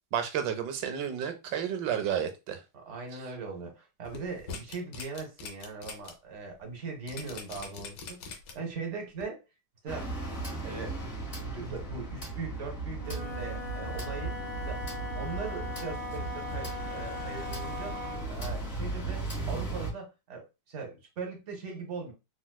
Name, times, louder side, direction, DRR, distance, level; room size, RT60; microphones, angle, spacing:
voice 1, 0.1-2.6, right 8 dB, 85° right, 1.3 m, -31 dB
voice 2, 2.7-9.4 9.8-10.1 10.6-14.4 14.6-14.9 15.1-17.9 18.3-22.1, right 4 dB, 55° right, 0.9 m, -40 dB
sound 1, 4.0-6.1 6.5-6.6 7.1-8.7 9.2-9.3, left 5 dB, 80° left, 1.3 m, -42 dB
sound 2, 9.9-19.9, right 3 dB, 35° left, 1.6 m, -36 dB
Wind instrument woodwind instrument, 12.9-18.3, left 2 dB, 15° left, 1.1 m, -40 dB
4.0 x 2.3 x 2.2 m
omnidirectional pair, 1.9 m